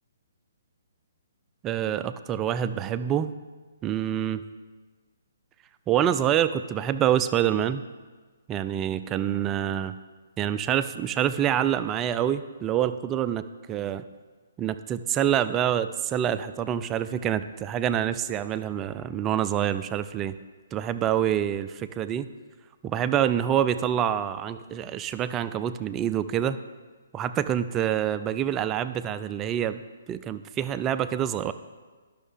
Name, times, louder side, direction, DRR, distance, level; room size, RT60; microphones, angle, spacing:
voice 1, 1.6-3.3 3.8-4.4 5.9-7.8 8.5-10.0 10.4-13.4 13.7-14.0 14.6-20.4 20.7-22.3 22.8-26.6 27.1-29.8 30.1-31.5, right 10 dB, 20° right, 12 dB, 0.3 m, -26 dB
12.0 x 6.2 x 3.3 m, 1.4 s
figure-of-eight pair, 135°, 0 cm